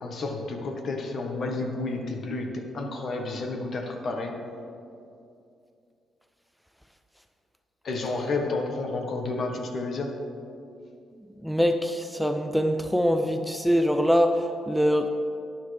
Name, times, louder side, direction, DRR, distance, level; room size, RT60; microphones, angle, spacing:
voice 1, 0.0-4.5 7.8-10.1, left 3 dB, 55° left, 4 dB, 1.3 m, -31 dB
voice 2, 11.4-15.1, equal, ahead, 6 dB, 0.5 m, -23 dB
12.0 x 10.0 x 3.4 m, 2.5 s
cardioid pair, 90°, 0 cm